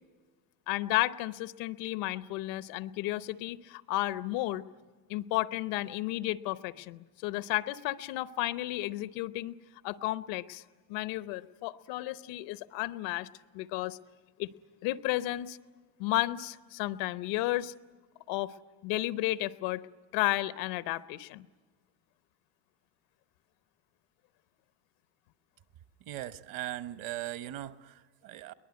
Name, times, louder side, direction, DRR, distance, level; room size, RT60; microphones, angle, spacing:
voice 1, 0.7-4.6 5.1-9.6 9.8-10.6 10.9-13.3 13.5-14.0 14.4-14.5 14.8-15.6 16.0-17.7 18.3-18.6 18.8-19.8 20.1-21.5, left 17 dB, 85° left, 15 dB, 0.9 m, -32 dB
voice 2, 26.1-28.5, right 14 dB, 50° right, 13 dB, 1.0 m, -39 dB
23.0 x 19.5 x 9.6 m, 1.4 s
cardioid pair, 145°, 43 cm